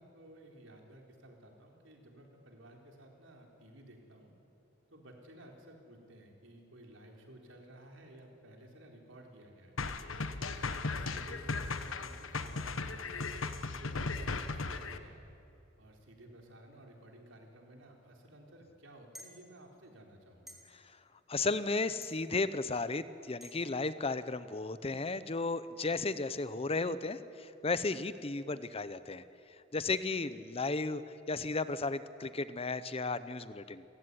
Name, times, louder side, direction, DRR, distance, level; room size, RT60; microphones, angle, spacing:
voice 1, 0.0-4.3 4.9-9.8 10.4-13.3 13.7-15.3 15.8-20.6, right 1 dB, 70° right, 2 dB, 4.1 m, -55 dB
sound 1, 9.8-15.0, left 3 dB, 85° left, 1.3 m, -37 dB
sound 2, 19.1-19.3 20.5-20.6 22.0-22.2 23.4-23.5, equal, ahead, 3.2 m, -49 dB
voice 2, 21.3-29.2 29.7-31.0 31.3-33.8, left 3 dB, 30° left, 14 dB, 0.7 m, -34 dB
28.5 x 15.5 x 9.8 m, 2.9 s
head